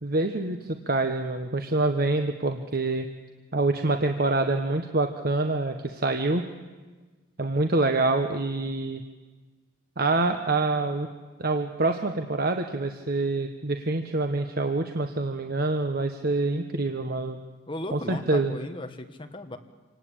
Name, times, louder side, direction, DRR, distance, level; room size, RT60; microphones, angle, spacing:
voice 1, 0.0-3.1 3.5-6.4 7.4-9.0 10.0-11.1 11.4-17.4 17.9-18.5, right 2 dB, 50° right, 6 dB, 1.2 m, -26 dB
voice 2, 17.7-19.6, left 1 dB, 25° left, 6 dB, 1.7 m, -36 dB
26.5 x 18.5 x 8.8 m, 1.3 s
head